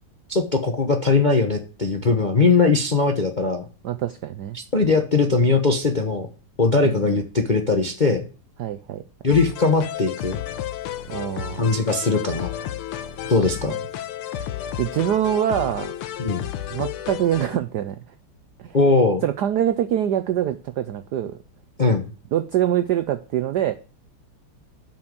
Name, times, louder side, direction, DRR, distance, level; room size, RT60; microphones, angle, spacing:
voice 1, 0.3-3.6 4.5-6.3 6.6-8.3 9.2-10.4 11.6-12.5 13.3-13.7 16.2-16.4 18.7-19.2 21.8-22.1, left 3 dB, 40° left, 5 dB, 0.6 m, -20 dB
voice 2, 3.8-4.6 6.8-7.2 8.6-9.0 11.1-11.6 13.2-13.4 14.3-14.4 14.8-15.9 16.7-18.0 18.6-18.8 19.2-21.4 22.3-23.7, right 11 dB, 75° right, 12 dB, 0.9 m, -24 dB
sound 1, 9.3-17.6, left 11 dB, 80° left, 1.8 m, -32 dB
7.7 x 6.0 x 7.5 m, 0.37 s
omnidirectional pair, 2.4 m